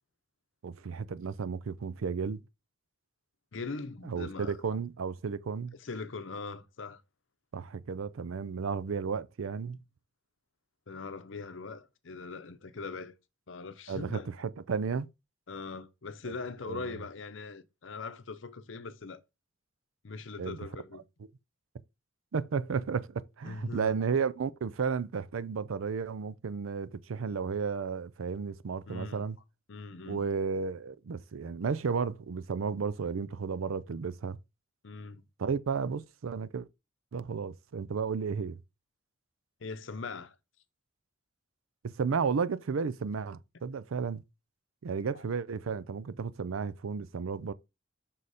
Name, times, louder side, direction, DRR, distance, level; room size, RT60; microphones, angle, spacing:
voice 1, 0.6-2.4 4.0-5.7 7.5-9.8 13.9-15.1 16.2-16.3 16.6-16.9 20.4-20.6 22.3-29.4 30.1-34.4 35.4-36.7 37.1-38.6 41.8-44.2 44.8-47.5, right 5 dB, 90° right, 0.5 m, -33 dB
voice 2, 3.5-4.8 5.8-7.0 10.9-13.1 13.5-14.3 15.5-19.2 20.0-21.0 23.4-24.0 28.9-29.3 29.7-30.3 34.8-35.2 39.6-40.3 45.1-45.2, left 4 dB, 70° left, 0.7 m, -41 dB
5.7 x 4.1 x 4.9 m
head